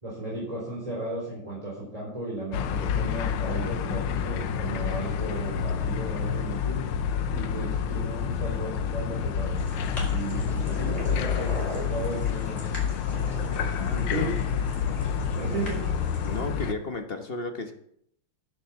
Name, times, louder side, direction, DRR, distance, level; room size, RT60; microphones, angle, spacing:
voice 1, 0.0-6.8 7.3-9.6 10.1-12.6 13.9-14.3 15.4-15.9, right 1 dB, 15° right, -6 dB, 3.9 m, -35 dB
sound 1, 2.5-16.7, left 7 dB, 85° left, 1.7 m, -28 dB
sound 2, 9.5-16.4, left 1 dB, 15° left, 5.1 m, -40 dB
voice 2, 13.7-14.3 16.2-17.7, left 3 dB, 40° left, 6 dB, 0.9 m, -34 dB
11.0 x 8.2 x 7.1 m, 0.69 s
omnidirectional pair, 2.4 m